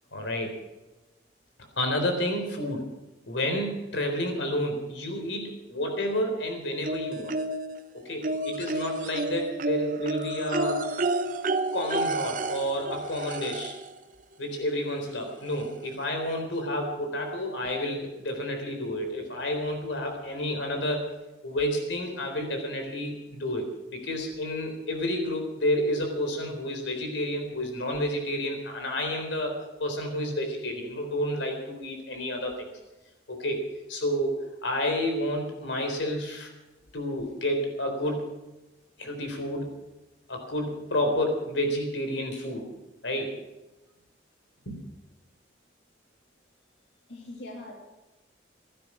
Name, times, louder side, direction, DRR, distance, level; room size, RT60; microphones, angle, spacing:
voice 1, 0.1-0.5 1.8-2.9 3.3-7.4 7.9-10.9 11.7-13.7 14.4-21.1 21.4-32.7 33.3-34.4 34.6-36.5 36.9-38.3 39.0-39.7 40.3-42.7 43.0-43.3 44.7-44.8, left 1 dB, 85° left, 4 dB, 4.0 m, -30 dB
sound 1, 6.8-7.8 8.2-13.9 15.1-15.2 15.6-15.7, right 2 dB, 45° right, 0.9 m, -30 dB
voice 2, 47.1-47.7, left 2 dB, 65° left, -2 dB, 3.0 m, -41 dB
16.0 x 12.0 x 6.2 m, 1.0 s
head